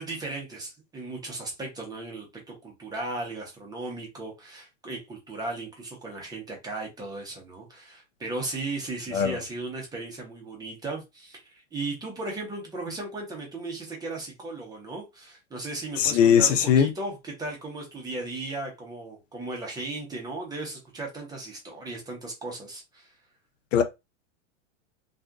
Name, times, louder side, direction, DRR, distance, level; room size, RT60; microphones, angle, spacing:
voice 1, 0.0-23.1, right 2 dB, 10° right, 0.8 m, -36 dB
voice 2, 16.0-16.9 23.7-23.8, left 8 dB, 80° left, 0.7 m, -20 dB
2.5 x 2.5 x 2.3 m
supercardioid pair, 140°, 37 cm